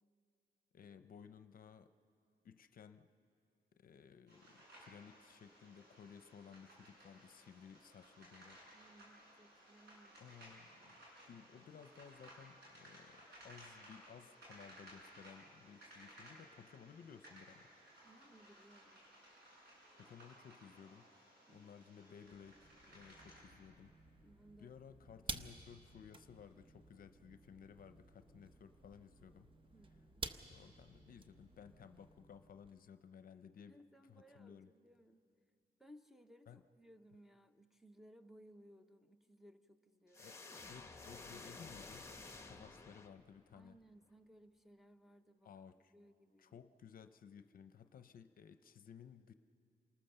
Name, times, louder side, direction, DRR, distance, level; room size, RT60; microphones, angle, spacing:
voice 1, 0.7-1.9 2.4-3.1 3.7-8.6 10.2-11.0 11.3-17.7 20.0-24.0 24.6-29.5 30.4-33.8 34.1-34.7 36.5-36.6 40.2-40.4 40.7-42.1 42.4-43.8 45.4-45.9 46.4-49.3, left 7 dB, 60° left, 11 dB, 0.6 m, -57 dB
sound 1, 4.3-23.4, right 1 dB, 85° right, 6.9 m, -60 dB
voice 2, 8.7-11.0 18.0-19.1 21.5-21.9 24.2-25.5 29.7-30.3 33.7-35.2 35.8-40.6 43.5-45.5 45.9-46.6, equal, ahead, 3 dB, 0.8 m, -63 dB
sound 2, 22.2-32.7, right 2 dB, 30° right, 0.8 m, -52 dB
sound 3, 40.1-43.5, left 3 dB, 15° left, 1.2 m, -52 dB
28.0 x 19.5 x 6.7 m, 2.5 s
wide cardioid pair, 125°, 17 cm